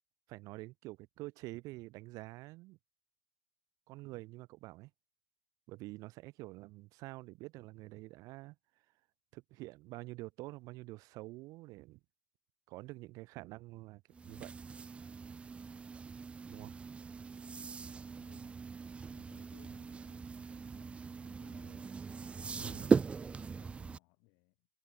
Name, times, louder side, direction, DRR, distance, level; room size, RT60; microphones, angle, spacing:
voice 1, 0.3-2.8 3.9-4.9 5.7-8.6 9.3-12.0 12.7-14.5 16.5-16.7 22.6-22.9, right 20 dB, 60° right, 1.1 m, -47 dB
sound 1, 14.1-24.0, right 5 dB, 15° right, 0.3 m, -38 dB
voice 2, 18.1-18.6 19.1-21.9 22.5-24.7, left 37 dB, 75° left, 5.5 m, -64 dB
cardioid pair, 130°, 7 cm